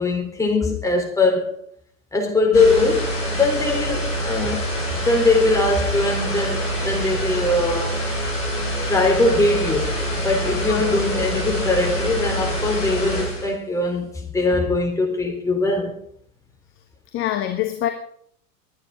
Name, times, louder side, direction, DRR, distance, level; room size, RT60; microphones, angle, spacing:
voice 1, 0.0-1.6 2.1-4.7 5.0-8.0 8.9-15.9, left 2 dB, 5° left, 3.8 m, -21 dB
sound 1, 2.5-13.5, equal, 70° left, 6.8 m, -26 dB
voice 2, 17.1-17.9, left 12 dB, 25° left, 1.2 m, -25 dB
21.5 x 9.6 x 3.9 m
figure-of-eight pair, 90°, 47 cm